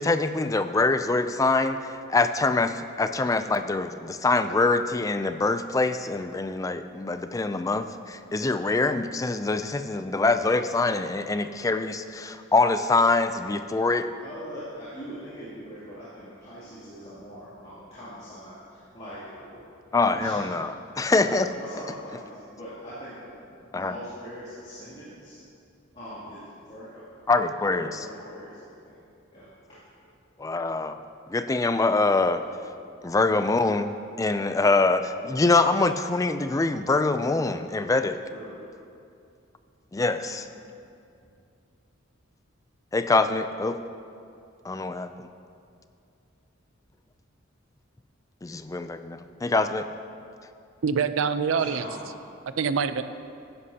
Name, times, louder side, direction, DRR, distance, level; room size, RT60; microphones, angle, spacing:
voice 1, 0.0-1.8 2.1-14.1 19.9-21.5 23.7-23.9 27.3-28.0 30.4-31.0 31.3-32.4 33.0-38.2 39.9-40.5 42.9-43.8 44.6-45.3 48.4-49.9, left 3 dB, 15° left, 10 dB, 0.3 m, -24 dB
voice 2, 14.2-19.6 20.1-20.4 21.2-23.4 23.8-25.4 25.9-27.0 27.7-29.0 29.3-29.8 38.3-38.6 40.2-40.4 51.5-52.1, equal, 30° left, -12 dB, 2.7 m, -42 dB
voice 3, 50.8-51.8 52.6-53.0, right 6 dB, 75° right, 12 dB, 0.5 m, -25 dB
15.0 x 11.5 x 2.8 m, 2.5 s
head